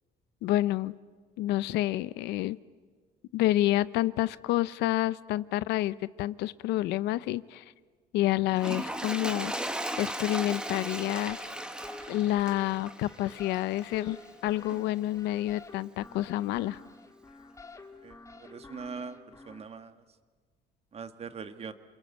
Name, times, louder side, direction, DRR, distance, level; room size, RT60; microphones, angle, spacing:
voice 1, 0.4-0.9 1.4-2.6 3.3-7.6 8.1-9.5 10.0-11.4 12.1-14.2 14.4-16.8, left 15 dB, 85° left, 18 dB, 0.7 m, -28 dB
Toilet flush, 8.5-14.0 14.7-14.8, right 1 dB, 5° right, 1.6 m, -36 dB
sound 1, 11.3-19.7, left 3 dB, 20° left, 1.8 m, -50 dB
voice 2, 18.0-19.2 19.4-19.9 20.9-21.7, right 5 dB, 35° right, 9 dB, 1.6 m, -41 dB
28.5 x 22.0 x 8.0 m, 1.5 s
cardioid pair, 110°, 17 cm